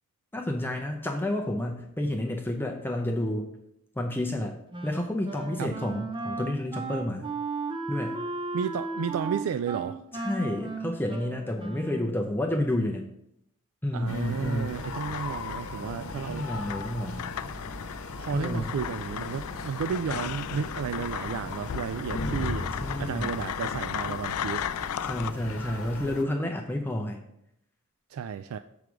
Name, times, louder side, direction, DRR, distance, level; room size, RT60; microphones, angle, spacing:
voice 1, 0.3-3.5 4.0-4.6 4.8-7.3 7.9-8.2 10.1-13.1 13.8-14.9 16.3-17.3 18.3-18.8 22.8-23.3 25.0-27.2, left 1 dB, 10° left, 2 dB, 0.6 m, -30 dB
Wind instrument woodwind instrument, 4.7-12.2, right 3 dB, 20° right, 0.8 m, -35 dB
voice 2, 8.5-10.0 13.9-16.5 18.2-22.7 23.0-24.6 28.1-28.6, right 7 dB, 70° right, 11 dB, 0.3 m, -32 dB
sound 1, 14.1-26.2, left 2 dB, 65° left, 1.0 m, -38 dB
sound 2, 14.7-25.3, left 9 dB, 80° left, 0.4 m, -36 dB
6.8 x 4.7 x 6.0 m, 0.78 s
head